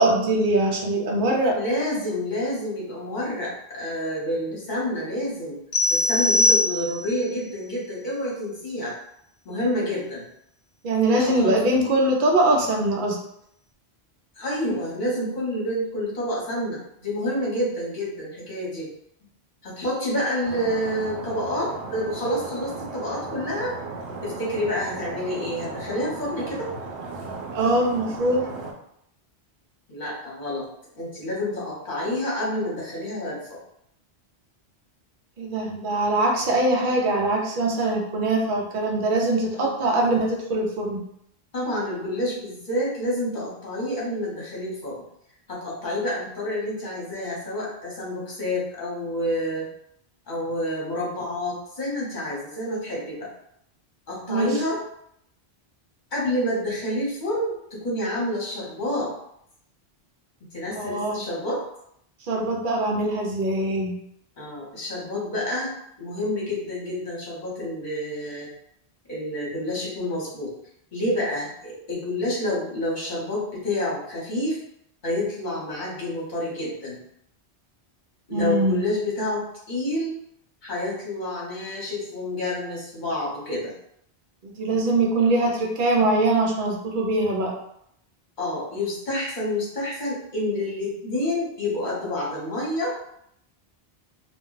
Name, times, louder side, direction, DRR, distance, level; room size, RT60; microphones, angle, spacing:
voice 1, 0.0-1.5 10.8-13.2 27.5-28.5 35.4-41.0 54.3-54.5 60.8-61.2 62.3-63.9 78.3-78.8 84.4-87.5, right 2 dB, 55° right, -1 dB, 0.7 m, -22 dB
voice 2, 1.6-5.6 5.9-8.9 9.4-10.2 11.1-11.5 14.4-18.9 19.6-23.7 24.2-26.7 29.9-30.7 31.0-33.6 39.5-39.7 41.5-45.0 45.5-49.6 50.3-53.3 54.1-54.8 56.1-59.1 60.5-61.6 64.4-65.7 66.0-68.5 69.1-70.5 70.9-74.6 75.0-77.0 78.3-80.1 80.6-83.7 88.4-92.9, left 1 dB, 50° left, -5 dB, 1.0 m, -28 dB
sound 1, 5.7-7.2, left 2 dB, 70° left, 0.8 m, -21 dB
Stream, 20.4-28.7, right 3 dB, 90° right, 0.9 m, -36 dB
2.4 x 2.1 x 3.7 m, 0.73 s
omnidirectional pair, 1.1 m